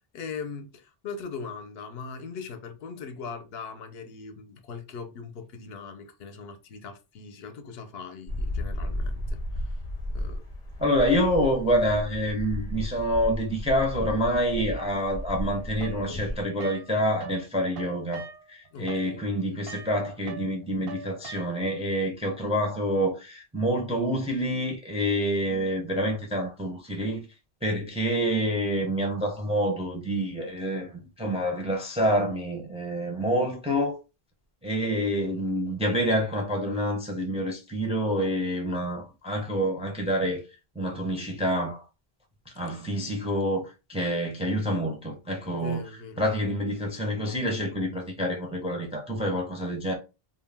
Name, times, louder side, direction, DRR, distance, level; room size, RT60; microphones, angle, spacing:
voice 1, 0.1-9.8 10.1-10.4 18.7-19.2 45.5-46.3, left 5 dB, 75° left, 0.8 m, -40 dB
sound 1, 8.3-16.4, left 1 dB, 45° left, 0.8 m, -34 dB
voice 2, 10.8-27.2 27.6-34.0 34.6-40.4 40.8-41.8 42.6-45.8 46.2-49.9, equal, 10° right, 0.4 m, -27 dB
sound 2, 15.8-17.5 17.7-21.8, right 4 dB, 75° right, 0.8 m, -43 dB
2.4 x 2.1 x 3.2 m
omnidirectional pair, 1.0 m